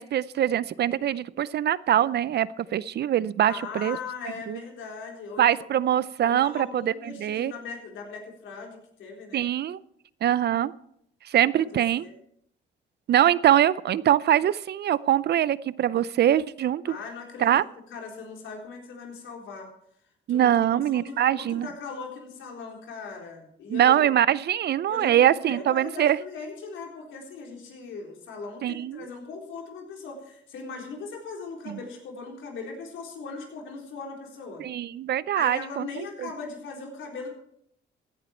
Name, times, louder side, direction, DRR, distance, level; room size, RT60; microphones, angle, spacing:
voice 1, 0.0-4.0 4.5-4.6 5.4-7.5 9.3-9.8 10.2-10.7 11.2-12.1 13.1-16.9 17.4-17.6 20.3-21.7 23.7-26.2 28.6-29.1 31.7-31.8 34.6-36.3, right 11 dB, 55° right, 19 dB, 0.5 m, -23 dB
voice 2, 3.4-5.5 6.2-9.5 11.6-12.1 16.9-17.5 17.9-19.7 20.3-20.5 20.9-24.1 24.9-34.6 35.3-37.3, left 4 dB, 75° left, 1 dB, 4.0 m, -39 dB
16.0 x 10.5 x 4.4 m, 0.70 s
cardioid pair, 90°, 20 cm